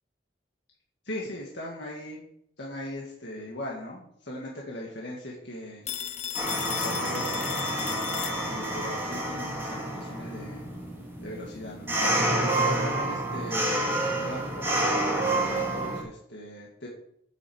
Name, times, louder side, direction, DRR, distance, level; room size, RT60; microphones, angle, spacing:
voice 1, 1.0-2.2 2.6-5.8 6.2-6.3 6.6-7.9 8.4-10.7 11.2-11.9 12.6-16.9, left 1 dB, 75° left, -3 dB, 2.0 m, -39 dB
Telephone, 5.9-8.9, left 10 dB, 35° left, 0.6 m, -35 dB
sound 1, 6.3-16.0, right 1 dB, 15° right, 3.1 m, -29 dB
8.1 x 7.9 x 7.1 m, 0.74 s
head